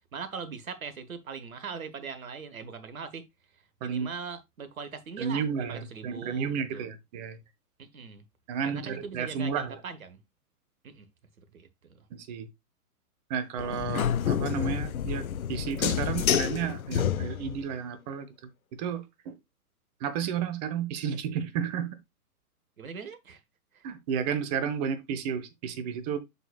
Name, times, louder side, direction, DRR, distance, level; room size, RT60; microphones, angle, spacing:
voice 1, 0.1-3.2 3.5-6.9 7.8-8.2 8.6-10.2 10.8-11.1 11.4-12.1 22.8-23.4 23.7-23.8, right 5 dB, 65° right, 1.5 m, -41 dB
voice 2, 5.2-7.4 8.5-9.8 12.1-12.5 13.3-18.3 18.7-19.4 20.0-22.0 23.8-26.2, right 7 dB, 30° right, 1.0 m, -32 dB
sound 1, 13.6-17.7, left 9 dB, 65° left, 0.6 m, -29 dB
7.9 x 6.2 x 2.3 m
figure-of-eight pair, 120°, 45 cm